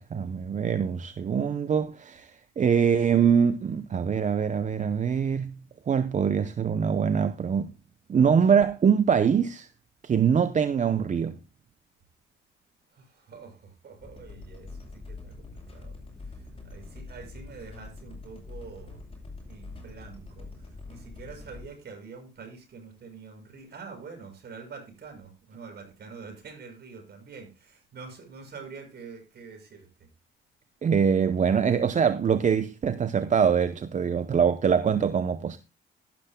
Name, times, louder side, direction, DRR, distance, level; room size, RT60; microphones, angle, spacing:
voice 1, 0.0-5.6 5.9-7.7 8.1-9.7 10.0-11.4 30.8-35.6, right 7 dB, 40° right, 0.7 m, -24 dB
voice 2, 12.9-15.9 16.3-19.0 19.5-30.1, right 5 dB, 55° right, 6.4 m, -46 dB
sound 1, 14.0-21.7, left 3 dB, 25° left, 7.6 m, -44 dB
14.0 x 12.0 x 2.2 m
cardioid pair, 90°, 20 cm